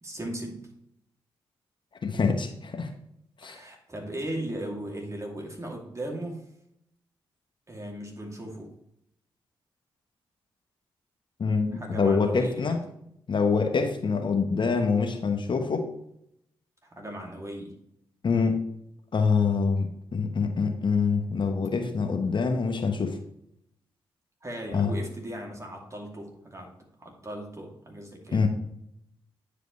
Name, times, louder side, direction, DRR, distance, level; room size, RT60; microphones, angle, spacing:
voice 1, 0.0-0.7 3.4-6.4 7.7-8.7 11.7-12.8 16.9-17.7 21.5-21.7 24.4-26.7 27.0-28.5, right 1 dB, 30° right, 1 dB, 2.5 m, -37 dB
voice 2, 2.0-2.9 3.4-3.6 11.4-12.8 13.3-15.9 18.2-18.6 19.1-23.2 24.7-24.9 28.3-28.5, left 5 dB, 50° left, 5 dB, 1.0 m, -25 dB
9.5 x 5.0 x 3.1 m, 0.74 s
supercardioid pair, 45°, 10 cm